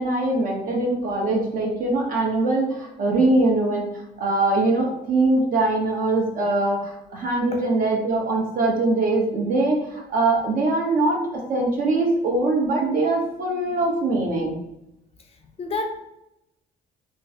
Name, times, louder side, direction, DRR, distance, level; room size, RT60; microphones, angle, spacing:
voice 1, 0.0-3.9 4.2-11.2 11.5-14.6, right 2 dB, 55° right, -1 dB, 1.0 m, -22 dB
voice 2, 15.2-16.0, left 3 dB, 35° left, 4 dB, 0.5 m, -31 dB
3.1 x 2.1 x 3.6 m, 0.87 s
cardioid pair, 110°, 17 cm